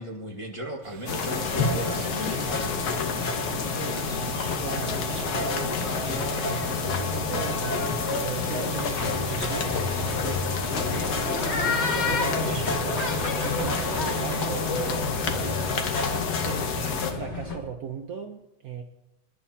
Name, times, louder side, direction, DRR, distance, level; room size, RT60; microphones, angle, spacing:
voice 1, 0.0-3.2, right 1 dB, 15° left, 0 dB, 1.3 m, -36 dB
sound 1, 0.8-17.0, right 10 dB, 90° right, 1.5 m, -39 dB
sound 2, 1.1-17.1, left 5 dB, 55° left, 1.5 m, -29 dB
sound 3, 1.3-17.6, left 3 dB, 35° left, 2.0 m, -32 dB
voice 2, 4.6-5.0 5.3-7.8 8.1-11.3 11.6-12.8 13.3-15.7 16.4-16.7 17.1-18.8, right 6 dB, 55° right, 4 dB, 1.2 m, -38 dB
27.0 x 11.0 x 2.8 m, 0.87 s
omnidirectional pair, 2.2 m